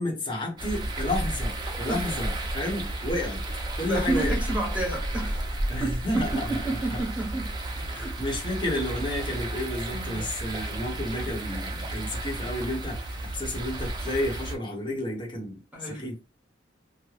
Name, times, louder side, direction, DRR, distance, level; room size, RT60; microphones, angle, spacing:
voice 1, 0.0-3.4 3.8-4.4 5.7-6.5 6.9-7.0 7.7-13.0 13.2-16.2, left 1 dB, 30° left, 0.9 m, -31 dB
sound 1, 0.6-14.6, right 1 dB, 25° right, 0.5 m, -32 dB
voice 2, 3.8-5.5 5.8-7.5 7.9-8.2 9.9-10.3 15.7-16.1, right 2 dB, 10° right, 0.9 m, -30 dB
2.4 x 2.1 x 3.2 m
head